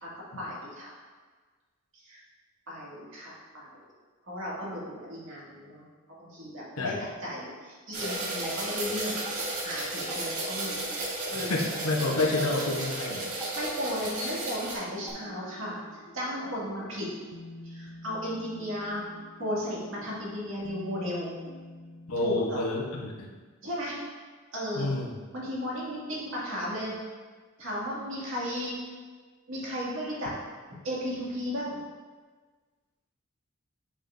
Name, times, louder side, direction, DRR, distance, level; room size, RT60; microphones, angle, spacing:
voice 1, 0.0-1.0 1.9-2.2 2.7-3.8 4.2-5.9 6.2-9.2 9.6-11.6 13.6-17.1 17.6-19.1 19.4-21.3 22.2-22.6 23.6-24.0 24.5-24.9 25.3-26.9 27.6-28.8 29.5-30.3 30.8-31.8, equal, 65° right, -6 dB, 2.2 m, -35 dB
sound 1, 7.9-14.7, right 2 dB, 90° right, 1.7 m, -34 dB
Water / Drip, 8.1-15.1, right 2 dB, 10° right, 1.4 m, -49 dB
voice 2, 11.3-13.3 22.1-23.3 24.8-25.1, left 2 dB, 90° left, 0 dB, 1.0 m, -29 dB
sound 2, 14.9-22.2, left 1 dB, 55° left, 0.5 m, -47 dB
7.2 x 7.1 x 2.6 m, 1.4 s
head